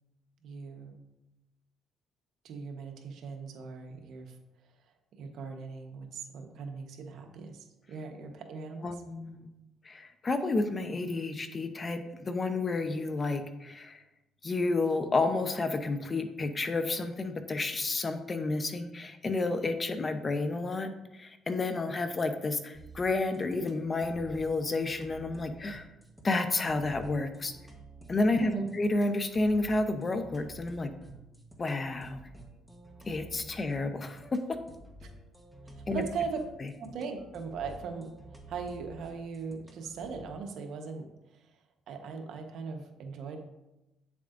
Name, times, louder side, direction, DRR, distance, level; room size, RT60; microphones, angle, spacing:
voice 1, 0.4-1.0 2.4-4.3 5.1-9.0 28.3-28.7 35.9-36.4 36.8-38.1 38.5-41.4 41.9-43.4, right 5 dB, 70° right, 4 dB, 1.0 m, -39 dB
voice 2, 8.8-9.5 9.8-14.0 14.4-25.9 26.2-27.5 28.1-30.9 31.6-32.2 33.1-34.6 35.9-36.0, left 3 dB, 30° left, 8 dB, 0.7 m, -31 dB
sound 1, 22.7-40.3, right 1 dB, ahead, 1.1 m, -51 dB
8.9 x 7.1 x 2.5 m, 0.96 s
cardioid pair, 100°, 0 cm